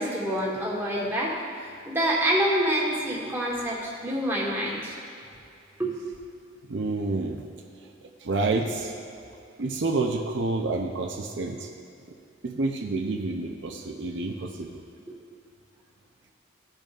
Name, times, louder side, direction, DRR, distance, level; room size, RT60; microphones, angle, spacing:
voice 1, 0.0-1.3 1.8-5.0 5.8-5.9, equal, 10° right, -5 dB, 1.3 m, -26 dB
voice 2, 6.7-7.4 8.0-8.9 9.6-11.7 12.4-14.8, right 3 dB, 70° right, 2 dB, 0.6 m, -29 dB
15.5 x 5.2 x 2.5 m, 2.6 s
head